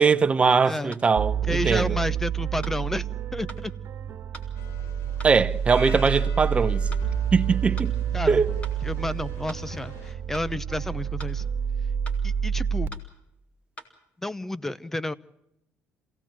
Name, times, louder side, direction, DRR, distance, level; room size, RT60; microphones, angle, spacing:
voice 1, 0.0-2.0 5.2-6.9 7.3-7.9 8.3-8.5, right 5 dB, 25° right, 0.9 m, -21 dB
sound 1, 0.9-1.1 1.8-1.9 2.6-2.8 3.5-3.6 4.3-4.5 5.2-5.4 6.0-6.2 6.9-7.1 7.8-7.9 8.6-8.8 9.5-9.6 10.3-10.5 11.2-11.4 12.1-12.2 12.9-13.1 13.8-13.9, equal, 25° left, 3.7 m, -43 dB
sound 2, 1.2-12.9, right 8 dB, 55° right, 1.6 m, -28 dB
voice 2, 1.5-3.1 3.3-3.7 8.1-8.4 8.8-11.4 12.2-12.9 14.2-15.1, left 1 dB, 5° left, 0.9 m, -31 dB
sound 3, 4.5-10.1, left 4 dB, 65° left, 4.1 m, -44 dB
27.5 x 17.5 x 7.5 m
cardioid pair, 125°, 5 cm